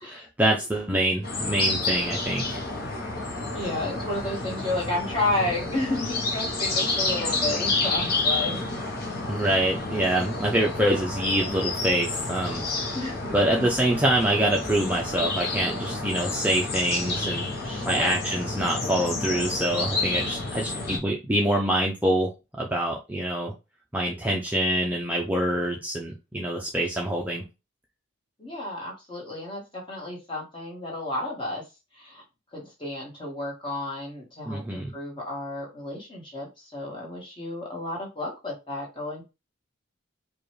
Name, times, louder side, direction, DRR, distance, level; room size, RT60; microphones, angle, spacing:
voice 1, 0.0-2.6 9.3-13.0 13.3-17.5 17.9-22.3 22.6-23.5 23.9-27.4 34.5-34.9, right 1 dB, 10° right, -1 dB, 0.5 m, -25 dB
sound 1, 1.2-21.0, left 3 dB, 50° left, 0.9 m, -30 dB
voice 2, 3.5-9.0 12.9-13.6 17.6-18.2 18.7-19.1 28.4-31.6 31.9-32.2 32.5-39.2, left 2 dB, 25° left, -2 dB, 1.4 m, -32 dB
4.8 x 2.3 x 3.2 m, 0.27 s
head